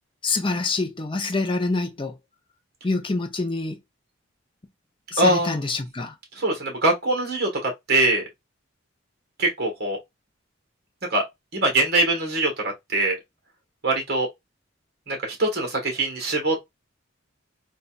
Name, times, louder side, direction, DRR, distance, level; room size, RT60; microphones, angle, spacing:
voice 1, 0.2-2.2 2.8-3.8 5.1-6.1, left 3 dB, 25° left, 0.5 m, -26 dB
voice 2, 5.2-5.6 6.3-8.2 9.4-10.0 11.1-11.2 11.5-12.5 12.9-13.2 13.8-14.3 15.1-16.7, right 2 dB, 50° right, 1.3 m, -23 dB
3.8 x 2.4 x 2.3 m
head